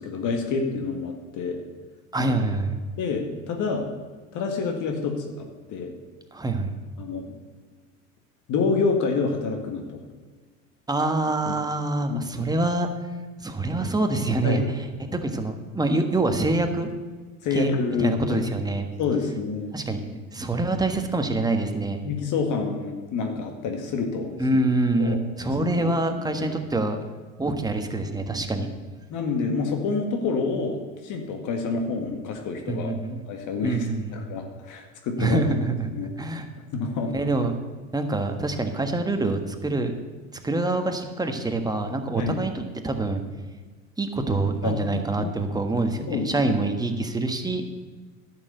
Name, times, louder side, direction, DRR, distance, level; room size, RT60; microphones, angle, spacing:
voice 1, 0.0-1.6 3.0-3.9 4.3-5.9 7.0-7.3 8.5-10.0 11.5-11.6 12.1-12.5 14.4-14.7 17.4-18.4 19.0-19.7 22.0-24.4 25.0-25.2 25.8-25.9 26.2-26.5 28.6-28.7 29.1-32.9 33.3-33.9 34.1-35.4 35.9-36.1 36.7-37.1 42.2-42.4 44.6-44.8 45.2-45.3 46.1-46.5, left 4 dB, 50° left, 4 dB, 1.9 m, -28 dB
voice 2, 2.1-2.8 6.3-6.7 10.9-12.9 13.4-14.6 15.1-16.9 17.5-18.9 19.7-22.0 24.4-27.0 27.4-28.7 32.7-33.2 33.6-34.2 35.2-35.9 36.2-36.5 37.1-37.6 37.9-39.9 40.4-43.2 44.0-47.7, right 2 dB, 10° right, 5 dB, 1.4 m, -25 dB
11.0 x 6.8 x 8.1 m, 1.4 s
hypercardioid pair, 90°, 39 cm